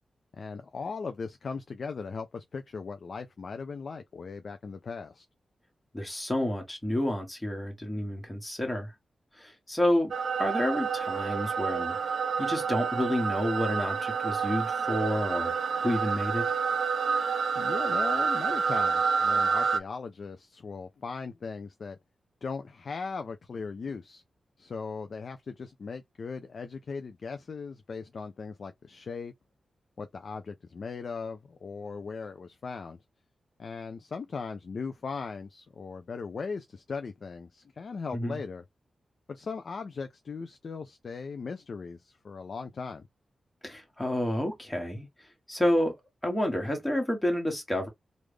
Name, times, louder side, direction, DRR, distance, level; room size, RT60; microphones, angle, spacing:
voice 1, 0.3-5.2 17.6-22.0 22.4-24.2 24.6-29.3 30.0-33.0 33.6-38.6 39.3-43.1, left 5 dB, 55° left, 0.4 m, -38 dB
voice 2, 5.9-8.9 9.3-10.1 10.4-12.0 12.4-15.5 15.8-16.4 38.1-38.4 43.6-45.1 45.5-45.9 46.2-47.9, left 1 dB, 10° left, 1.4 m, -29 dB
sound 1, 10.1-19.8, right 6 dB, 75° right, 0.4 m, -28 dB
3.2 x 2.5 x 3.4 m
wide cardioid pair, 120°, 0 cm